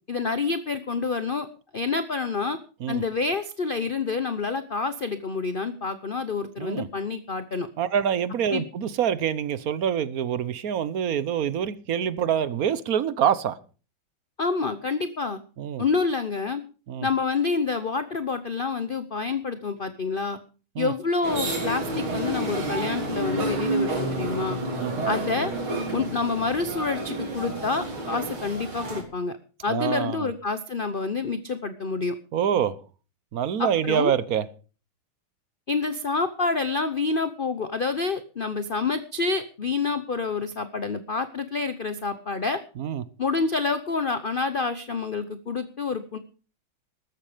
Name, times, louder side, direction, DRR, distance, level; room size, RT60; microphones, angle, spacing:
voice 1, 0.1-1.5 1.7-2.6 2.9-7.7 8.5-8.6 14.4-15.4 15.8-16.6 17.0-20.4 20.8-24.6 25.0-25.5 25.9-29.4 29.6-32.2 33.6-34.1 35.7-42.6 43.2-46.2, left 4 dB, 55° left, 0.6 m, -28 dB
voice 2, 7.8-13.6 15.6-15.8 16.9-17.1 20.8-20.9 24.8-25.1 29.7-30.3 32.3-32.8 33.3-34.4 42.8-43.0, right 8 dB, 55° right, 1.2 m, -26 dB
sound 1, 21.2-29.0, right 2 dB, 80° right, 4.3 m, -29 dB
14.0 x 13.0 x 5.1 m
omnidirectional pair, 2.2 m